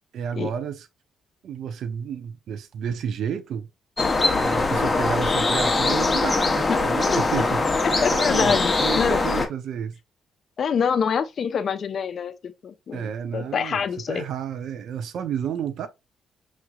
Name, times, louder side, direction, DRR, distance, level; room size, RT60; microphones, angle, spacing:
voice 1, 0.1-0.9 1.4-3.7 4.3-7.6 7.9-8.5 8.8-9.9 12.9-15.9, right 8 dB, 70° right, 0.6 m, -31 dB
sound 1, 4.0-9.5, left 3 dB, 25° left, 0.9 m, -22 dB
voice 2, 8.0-9.5 10.6-12.3 12.6-14.2, left 6 dB, 55° left, 0.7 m, -26 dB
5.9 x 3.0 x 2.4 m
cardioid pair, 90°, 0 cm